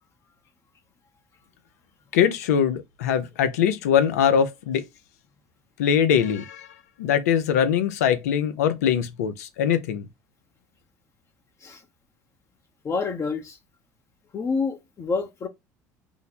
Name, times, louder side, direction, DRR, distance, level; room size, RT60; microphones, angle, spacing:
voice 1, 2.1-4.9 5.8-6.7 7.0-10.1, left 8 dB, 80° left, 0.5 m, -22 dB
voice 2, 12.8-13.6 14.3-15.5, left 4 dB, 35° left, 0.7 m, -28 dB
2.9 x 2.1 x 4.0 m
hypercardioid pair, 75°, 8 cm